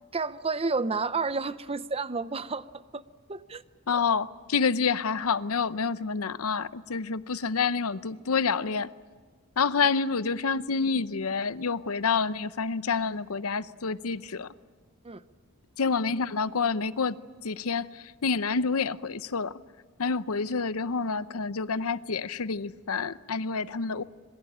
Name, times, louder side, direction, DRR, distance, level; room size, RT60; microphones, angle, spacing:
voice 1, 0.1-2.6 2.9-3.0 3.3-3.6 15.0-15.2, right 4 dB, 25° right, 0.7 m, -30 dB
voice 2, 3.9-8.9 9.6-14.5 15.8-17.2 17.4-19.5 20.0-24.0, left 5 dB, 80° left, 0.7 m, -28 dB
26.5 x 22.5 x 8.8 m
head